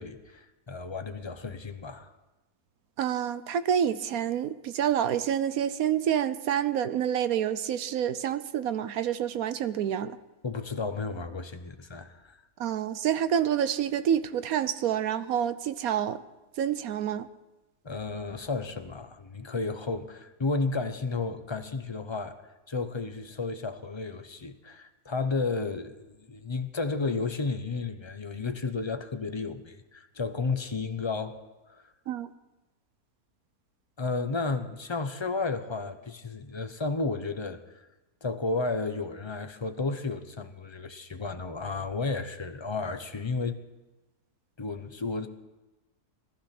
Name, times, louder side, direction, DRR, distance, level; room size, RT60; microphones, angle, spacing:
voice 1, 0.0-2.1 10.4-12.4 17.8-22.4 22.7-31.4 31.7-31.8 34.0-37.8 38.2-43.6 44.6-45.3, left 3 dB, 25° left, 8 dB, 0.7 m, -32 dB
voice 2, 3.0-10.2 12.6-16.2 16.6-17.3 32.1-32.3, right 9 dB, 70° right, 13 dB, 1.1 m, -28 dB
19.0 x 12.5 x 5.9 m, 1.1 s
omnidirectional pair, 1.7 m